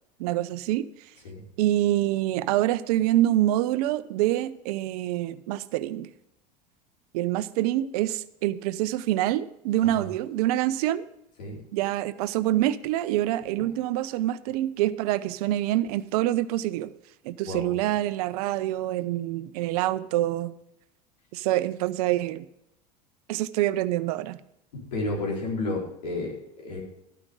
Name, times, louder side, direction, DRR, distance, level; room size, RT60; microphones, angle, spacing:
voice 1, 0.2-0.9 1.6-6.1 7.1-11.0 11.7-16.9 17.2-20.5 21.3-22.5 23.3-24.4, right 14 dB, 65° right, 14 dB, 0.7 m, -26 dB
voice 2, 24.7-26.8, left 2 dB, 75° left, -2 dB, 4.5 m, -32 dB
13.0 x 9.8 x 3.7 m, 0.81 s
hypercardioid pair, 80°, 21 cm